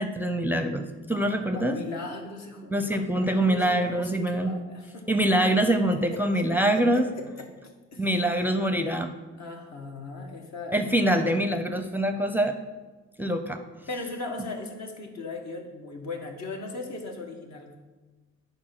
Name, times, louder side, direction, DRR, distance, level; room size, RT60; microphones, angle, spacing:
voice 1, 0.0-1.8 2.7-4.5 5.1-7.0 8.0-9.1 10.7-12.5 13.2-13.6, right 1 dB, 5° right, 6 dB, 0.6 m, -24 dB
voice 2, 1.5-5.1 5.9-8.1 9.3-11.3 13.9-17.8, left 2 dB, 65° left, 2 dB, 1.6 m, -38 dB
8.6 x 4.0 x 5.9 m, 1.3 s
cardioid pair, 90°, 30 cm